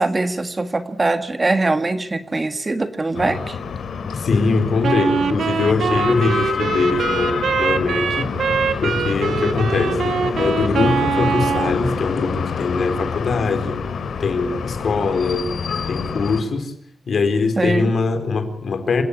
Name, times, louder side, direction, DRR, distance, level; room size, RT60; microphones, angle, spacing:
voice 1, 0.0-3.6 17.6-17.9, right 2 dB, 25° right, 9 dB, 1.7 m, -22 dB
sound 1, 3.1-16.4, left 6 dB, 80° left, 3.5 m, -27 dB
voice 2, 4.1-8.3 8.8-13.9 14.2-15.5 15.9-16.7 17.1-19.0, left 4 dB, 60° left, 8 dB, 3.9 m, -22 dB
Wind instrument woodwind instrument, 4.8-11.8, right 6 dB, 85° right, 1.7 m, -23 dB
27.5 x 17.0 x 9.9 m, 0.65 s
wide cardioid pair, 165°, 0 cm